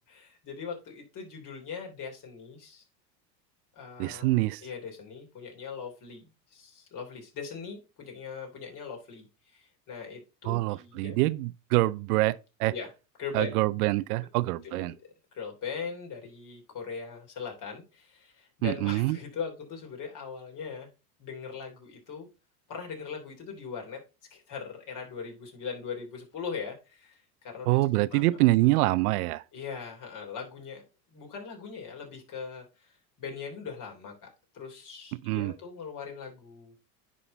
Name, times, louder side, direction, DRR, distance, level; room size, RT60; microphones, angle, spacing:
voice 1, 0.1-2.8 3.7-9.3 9.5-11.2 12.7-12.9 13.2-13.6 14.6-20.9 21.2-22.3 22.7-24.0 24.3-27.8 28.1-28.4 29.5-32.6 33.2-34.3 34.5-36.7, left 6 dB, 40° left, 3.3 m, -40 dB
voice 2, 4.0-4.6 10.4-12.7 13.3-14.9 18.6-19.2 27.7-29.4 35.2-35.5, right 19 dB, 70° right, 0.5 m, -25 dB
10.0 x 3.7 x 4.0 m
hypercardioid pair, 100°, 46 cm